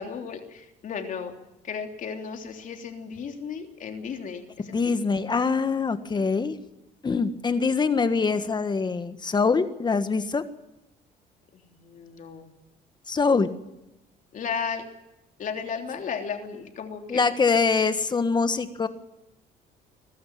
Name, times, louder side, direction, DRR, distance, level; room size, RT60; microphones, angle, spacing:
voice 1, 0.0-1.3 1.6-5.0 11.5-12.5 14.3-14.8 15.4-17.2, left 6 dB, 50° left, 4 dB, 3.3 m, -34 dB
voice 2, 4.7-6.6 7.0-10.4 13.1-13.5 17.1-18.9, left 4 dB, 25° left, 10 dB, 1.5 m, -24 dB
22.5 x 12.5 x 9.4 m, 0.93 s
cardioid pair, 110°, 17 cm